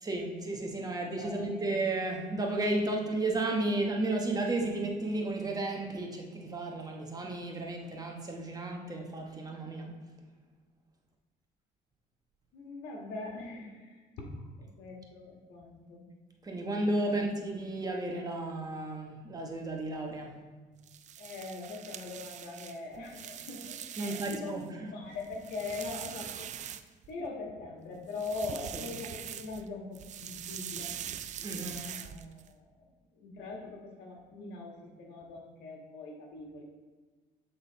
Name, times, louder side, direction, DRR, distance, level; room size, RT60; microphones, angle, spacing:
voice 1, 0.0-9.9 16.4-20.4 24.0-24.6 31.4-31.8, right 2 dB, 20° right, 0 dB, 1.1 m, -33 dB
voice 2, 0.9-1.6 12.5-14.0 14.6-16.1 17.0-17.3 21.2-26.5 27.1-31.0 31.4-32.9 33.1-36.6, left 3 dB, 80° left, 0 dB, 1.5 m, -42 dB
sound 1, 20.8-24.6 25.0-27.3 28.0-29.7 29.9-32.5, right 9 dB, 45° right, 0.4 m, -43 dB
8.2 x 3.9 x 4.0 m, 1.4 s
cardioid pair, 110°, 17 cm